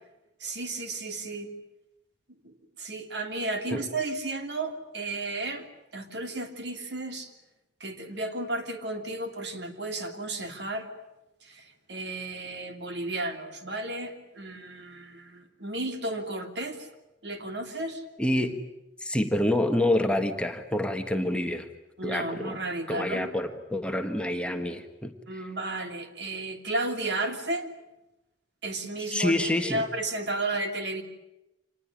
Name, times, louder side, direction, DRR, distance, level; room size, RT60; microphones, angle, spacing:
voice 1, 0.4-1.5 2.4-5.7 5.9-7.3 7.8-10.9 11.4-16.9 17.2-18.0 22.0-23.3 25.3-27.7 28.6-31.0, right 2 dB, 70° right, 6 dB, 2.9 m, -33 dB
voice 2, 18.2-18.6 19.0-21.7 22.0-22.6 22.9-25.1 29.1-29.8, left 1 dB, 5° left, 6 dB, 1.5 m, -27 dB
26.0 x 20.0 x 10.0 m, 0.96 s
head